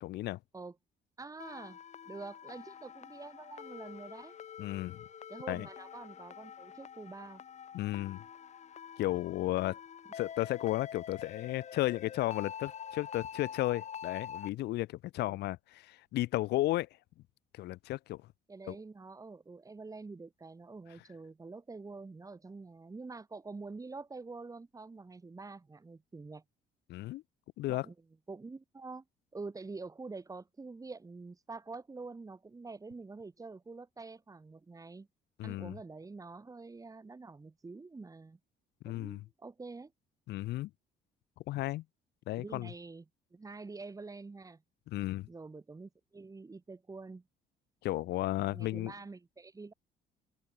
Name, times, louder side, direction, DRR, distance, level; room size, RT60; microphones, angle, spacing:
voice 1, 0.0-0.4 4.6-5.0 5.5-5.7 7.7-8.2 9.0-9.8 10.1-16.9 17.5-18.2 18.7-18.8 26.9-27.2 27.6-27.9 35.4-35.8 38.8-39.2 40.3-40.7 41.5-41.8 42.3-42.7 44.9-45.3 47.8-48.9, left 17 dB, 80° left, 1.9 m, -34 dB
voice 2, 1.2-1.8 2.1-4.3 5.3-7.4 15.2-15.4 18.5-26.4 27.7-27.9 28.3-29.0 29.3-35.1 35.4-38.4 38.8-39.9 42.3-43.0 43.3-44.6 45.3-47.2 48.5-49.7, right 3 dB, 20° right, 6.1 m, -46 dB
sound 1, 1.4-14.5, left 8 dB, 45° left, 1.8 m, -46 dB
open air
cardioid pair, 110°, 17 cm